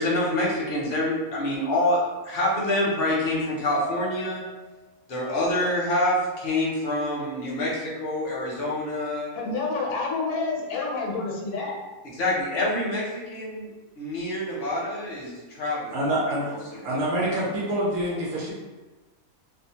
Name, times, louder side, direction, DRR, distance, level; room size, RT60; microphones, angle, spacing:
voice 1, 0.0-4.4 5.1-9.3 12.2-13.7 14.0-16.1 16.5-16.9, left 1 dB, 50° left, -5 dB, 0.7 m, -26 dB
sound 1, 3.7-4.9, left 2 dB, 30° right, 1.0 m, -40 dB
voice 2, 9.3-11.8, left 3 dB, 75° left, -1 dB, 1.0 m, -28 dB
voice 3, 15.9-16.6 16.8-18.5, right 1 dB, 80° right, -6 dB, 1.1 m, -26 dB
2.7 x 2.0 x 2.8 m, 1.2 s
omnidirectional pair, 1.5 m